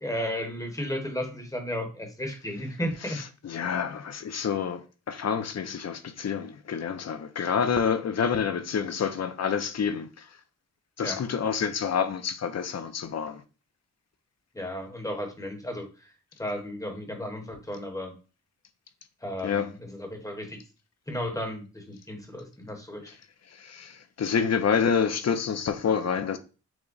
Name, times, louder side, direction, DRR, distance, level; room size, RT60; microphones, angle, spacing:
voice 1, 0.0-3.2 11.0-11.2 14.5-16.1 16.4-18.1 19.2-20.6 21.1-23.1, equal, 10° left, 1.0 m, -34 dB
voice 2, 3.1-10.3 11.0-13.4 19.4-19.7 23.5-26.4, left 7 dB, 55° left, 0.6 m, -28 dB
6.0 x 2.1 x 3.9 m
wide cardioid pair, 135°, 31 cm